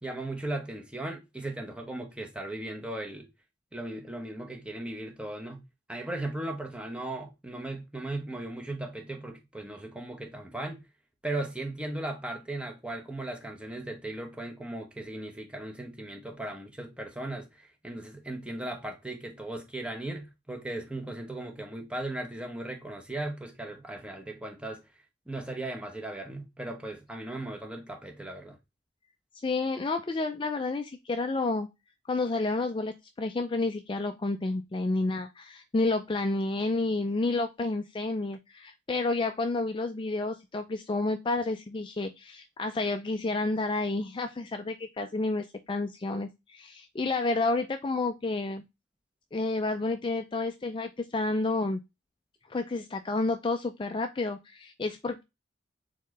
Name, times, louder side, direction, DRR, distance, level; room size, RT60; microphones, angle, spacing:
voice 1, 0.0-3.3 3.7-5.6 5.9-10.8 11.2-24.8 25.3-28.6, right 2 dB, 5° right, 0.9 m, -37 dB
voice 2, 29.4-31.7 32.1-48.6 49.3-51.8 52.5-55.2, left 2 dB, 25° left, 0.4 m, -30 dB
4.3 x 3.6 x 3.1 m
head